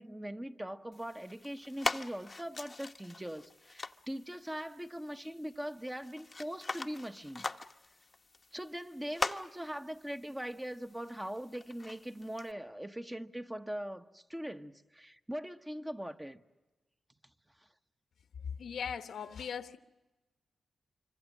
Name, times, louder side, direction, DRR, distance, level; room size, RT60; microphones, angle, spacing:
voice 1, 0.0-7.5 8.5-16.4, equal, 10° right, 1.1 m, -41 dB
sound 1, 0.9-12.5, left 3 dB, 30° left, 0.9 m, -43 dB
voice 2, 18.6-19.8, left 7 dB, 85° left, 1.1 m, -39 dB
26.0 x 24.5 x 7.4 m
cardioid pair, 85°, 0 cm